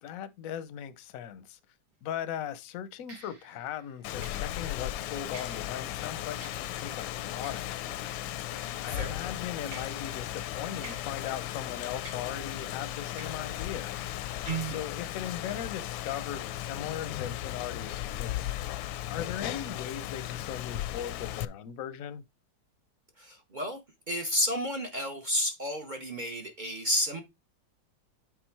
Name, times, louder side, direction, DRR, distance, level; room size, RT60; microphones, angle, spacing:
voice 1, 0.0-1.6 2.0-8.4 8.8-14.0 14.6-18.8 19.1-22.2, left 9 dB, 65° left, 0.9 m, -39 dB
sound 1, 1.9-2.2 3.1-9.3 9.7-14.4, right 3 dB, 85° right, 4.1 m, -53 dB
Rain, 4.0-21.5, left 13 dB, 85° left, 1.3 m, -36 dB
voice 2, 14.4-14.8 23.2-23.8 24.1-27.2, equal, 45° right, 0.6 m, -31 dB
8.3 x 3.8 x 4.5 m
omnidirectional pair, 2.1 m